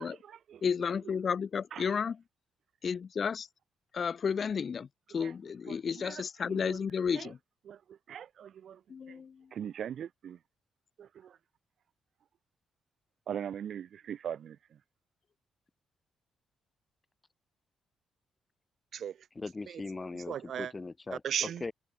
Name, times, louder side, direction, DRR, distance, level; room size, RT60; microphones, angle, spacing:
voice 1, 0.0-0.6 1.0-1.1 1.7-1.9 5.1-5.3 5.7-6.8 7.1-7.3 7.6-9.2 9.5-10.4 11.0-11.4 13.3-14.8 18.9-19.3 19.7-19.8 20.1-20.7 21.1-21.6, right 9 dB, 65° right, 1.6 m, -40 dB
voice 2, 0.6-2.2 2.8-3.5 3.9-7.4 8.9-9.5, left 6 dB, 50° left, 1.7 m, -32 dB
voice 3, 19.4-21.2 21.6-21.7, left 3 dB, 25° left, 4.2 m, -39 dB
cardioid pair, 70°, 0 cm